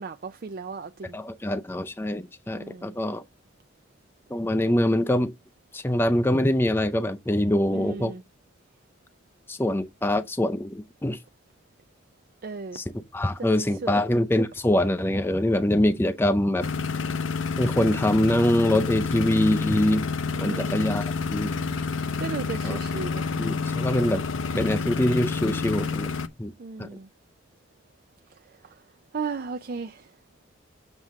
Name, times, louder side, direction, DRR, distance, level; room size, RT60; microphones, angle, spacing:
voice 1, 0.0-1.2 2.5-2.9 7.7-8.2 12.4-12.8 13.8-14.0 20.4-20.8 22.2-23.3 26.6-27.1 29.1-30.0, right 4 dB, 45° right, 0.4 m, -35 dB
voice 2, 1.1-3.2 4.3-5.3 5.7-8.1 9.5-11.2 12.7-12.8 13.1-16.7 17.6-20.1 20.4-21.5 22.6-22.8 23.4-24.2 24.5-26.1 26.4-26.5 26.8-26.9, left 1 dB, 10° left, 0.5 m, -24 dB
sound 1, 16.6-26.3, left 4 dB, 85° left, 0.7 m, -29 dB
7.4 x 3.5 x 6.3 m
head